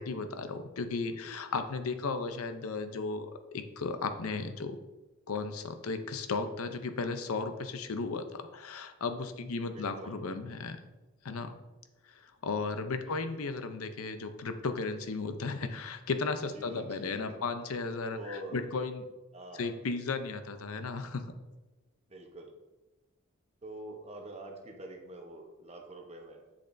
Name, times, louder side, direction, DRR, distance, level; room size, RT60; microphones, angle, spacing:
voice 1, 0.0-4.8 5.3-10.8 11.2-11.6 12.1-19.0 19.6-21.2, left 4 dB, 75° left, 8 dB, 0.6 m, -35 dB
voice 2, 9.6-10.2 13.0-13.2 15.5-15.8 16.4-17.4 18.0-18.7 19.3-19.7 22.1-22.5 23.6-26.5, right 1 dB, 30° right, 2 dB, 0.8 m, -46 dB
7.8 x 6.9 x 2.6 m, 1.1 s
head